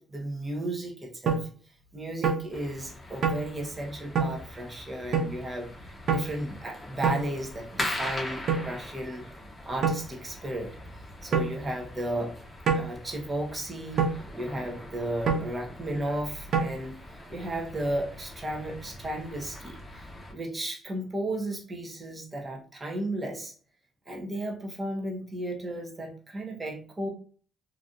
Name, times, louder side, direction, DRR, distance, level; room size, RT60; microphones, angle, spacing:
voice 1, 0.1-1.5 1.9-9.2 9.6-10.7 11.2-12.3 12.7-16.9 17.3-23.5 24.1-27.1, right 1 dB, 30° right, 1 dB, 1.1 m, -34 dB
sound 1, 1.3-1.4 2.2-2.4 3.2-3.4 4.1-4.3 5.1-5.3 6.1-6.3 7.0-7.2 8.5-8.7 9.8-10.0 11.3-11.5 12.7-12.9 14.0-14.2 15.3-15.5 16.5-16.6, right 5 dB, 70° right, 0.6 m, -25 dB
sound 2, 2.5-20.3, left 1 dB, 15° left, 0.9 m, -41 dB
3.0 x 2.7 x 2.6 m, 0.42 s
cardioid pair, 70°, 0 cm